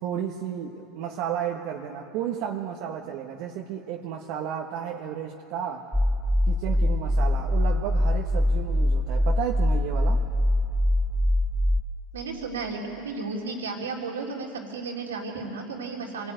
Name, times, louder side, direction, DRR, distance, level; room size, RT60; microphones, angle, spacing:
voice 1, 0.0-5.9 6.5-10.2, right 9 dB, 60° right, 0 dB, 1.6 m, -33 dB
sound 1, 5.9-11.8, left 1 dB, 5° right, 1.2 m, -23 dB
voice 2, 12.1-16.3, right 4 dB, 90° right, 0 dB, 3.3 m, -33 dB
25.0 x 17.5 x 9.3 m, 2.7 s
hypercardioid pair, 90°, 0 cm